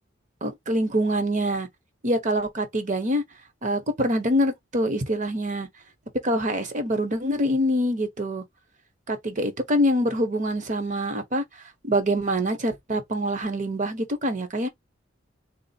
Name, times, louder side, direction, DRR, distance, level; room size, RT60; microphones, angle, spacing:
voice 1, 0.4-1.7 2.0-3.2 3.6-5.7 6.2-8.4 9.1-11.4 11.8-14.7, equal, 40° right, 0.9 m, -25 dB
3.6 x 2.0 x 4.1 m
head